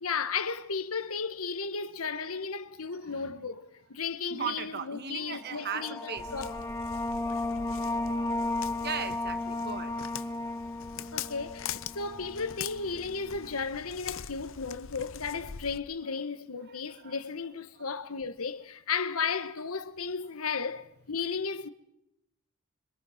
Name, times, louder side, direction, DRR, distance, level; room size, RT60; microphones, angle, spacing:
voice 1, 0.0-6.6 11.1-21.7, left 5 dB, 85° left, 1.3 m, -34 dB
voice 2, 4.3-6.3 8.8-10.0 16.7-17.1, right 7 dB, 50° right, 1.3 m, -37 dB
sound 1, 5.4-12.7, left 2 dB, 15° left, 1.3 m, -34 dB
Walk footsteps, 6.2-15.8, left 8 dB, 65° left, 0.8 m, -43 dB
26.5 x 26.0 x 5.1 m
head